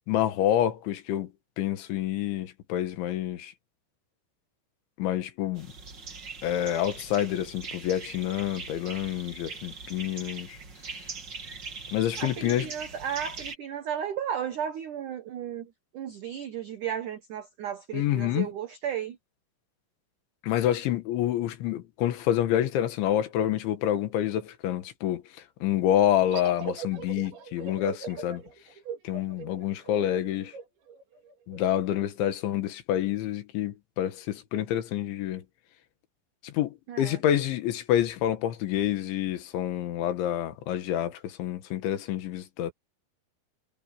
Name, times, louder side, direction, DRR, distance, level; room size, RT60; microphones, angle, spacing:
voice 1, 0.1-1.3 1.6-3.5 5.0-5.7 6.4-10.6 11.9-12.7 17.9-18.5 20.4-25.2 25.6-28.4 29.1-30.5 31.5-35.4 36.4-42.7, left 11 dB, 75° left, 3.8 m, -28 dB
sound 1, 5.6-13.6, right 4 dB, 30° right, 2.2 m, -41 dB
voice 2, 12.2-19.2 36.9-37.2, right 9 dB, 85° right, 1.7 m, -34 dB
sound 2, 26.3-31.6, right 6 dB, 70° right, 5.1 m, -40 dB
omnidirectional pair, 5.6 m